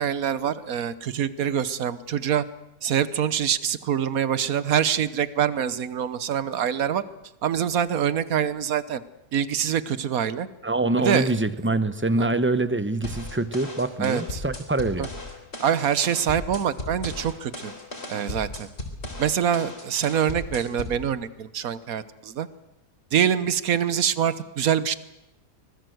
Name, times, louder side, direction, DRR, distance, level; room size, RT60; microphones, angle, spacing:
voice 1, 0.0-2.4 2.8-7.0 7.4-9.0 9.3-10.5 11.0-11.3 12.2-12.3 14.0-14.4 15.0-15.1 15.6-17.7 18.1-18.7 19.2-22.5 23.1-24.9, right 9 dB, 65° right, 15 dB, 1.4 m, -25 dB
voice 2, 10.6-15.1, right 2 dB, 10° right, 12 dB, 0.7 m, -25 dB
sound 1, 13.0-21.0, left 2 dB, 40° left, 4.2 m, -36 dB
25.0 x 20.5 x 7.9 m, 0.89 s
omnidirectional pair, 1.7 m